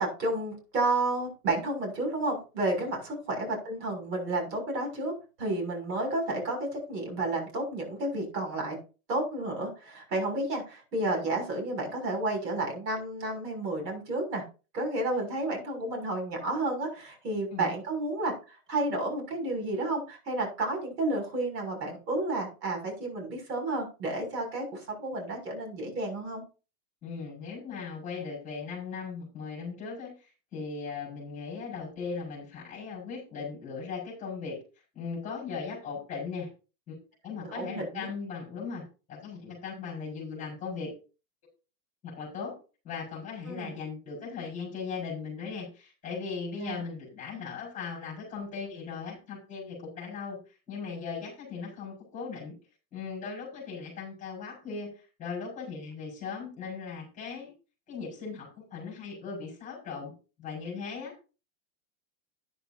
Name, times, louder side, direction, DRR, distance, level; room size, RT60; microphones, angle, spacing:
voice 1, 0.0-5.1 5.4-8.8 9.1-14.4 14.7-26.4 37.4-38.1 43.5-43.7 46.6-46.8, right 2 dB, 85° right, 2 dB, 6.7 m, -31 dB
voice 2, 27.0-34.6 34.9-36.5 36.9-37.0 37.2-38.8 39.1-40.9 42.0-42.5 42.8-52.5 52.9-57.5 57.9-60.1 60.4-61.1, left 5 dB, 15° left, -4 dB, 5.3 m, -38 dB
13.0 x 10.0 x 2.7 m, 0.33 s
supercardioid pair, 170°, 48 cm